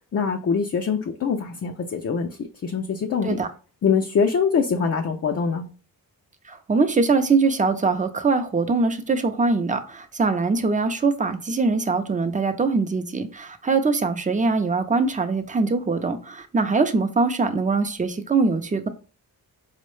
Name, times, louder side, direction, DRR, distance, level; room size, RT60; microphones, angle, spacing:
voice 1, 0.1-3.4 3.8-5.7, left 6 dB, 40° left, 0.5 m, -24 dB
voice 2, 6.5-18.9, right 4 dB, 20° right, 0.5 m, -22 dB
4.5 x 2.1 x 3.1 m
cardioid pair, 70°, 37 cm